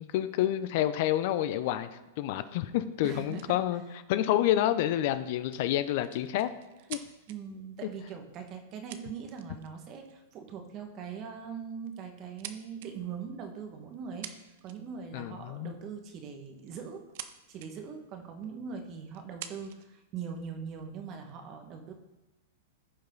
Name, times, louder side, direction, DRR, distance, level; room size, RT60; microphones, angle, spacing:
voice 1, 0.0-1.9 2.2-3.8 4.1-6.5 6.9-7.0 15.1-15.7, left 12 dB, 55° left, 12 dB, 0.6 m, -28 dB
voice 2, 3.0-3.4 7.3-17.0 17.5-21.9, right 6 dB, 40° right, 4 dB, 1.7 m, -41 dB
sound 1, 3.3-3.5 5.5-7.4 8.5-8.6 8.9-9.7 10.1-10.3 11.2-11.5 11.9-12.9 13.9-14.0 14.2-15.0 16.5-17.3 17.6-17.7 18.4-18.5 19.1-19.9 20.6-21.3, right 11 dB, 60° right, 0.8 m, -45 dB
15.0 x 5.5 x 4.0 m, 1.1 s
hypercardioid pair, 125°, 0 cm